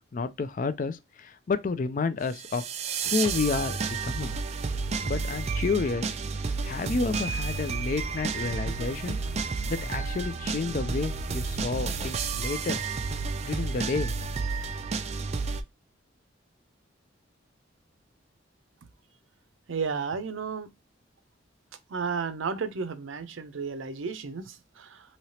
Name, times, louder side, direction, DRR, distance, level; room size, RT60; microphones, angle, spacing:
voice 1, 0.1-2.7 3.0-4.3 5.0-6.1 6.4-9.2 9.7-12.8 13.4-14.1, left 4 dB, 40° left, 0.4 m, -30 dB
sound 1, 2.3-15.6, right 4 dB, 35° right, 0.3 m, -31 dB
voice 2, 19.7-20.7 21.9-25.0, right 5 dB, 85° right, 0.5 m, -33 dB
3.2 x 2.8 x 2.7 m
head